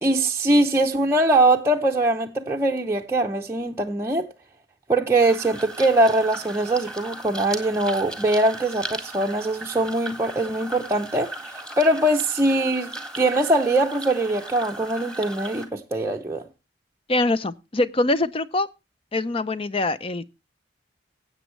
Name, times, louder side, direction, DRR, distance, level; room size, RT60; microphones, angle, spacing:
voice 1, 0.0-4.3 4.9-12.9 13.2-16.4, right 2 dB, 15° right, 0.7 m, -22 dB
sound 1, 5.2-15.7, right 1 dB, 5° left, 1.8 m, -37 dB
voice 2, 17.1-18.7 19.1-20.3, left 2 dB, 30° left, 0.6 m, -23 dB
16.5 x 8.1 x 3.1 m
head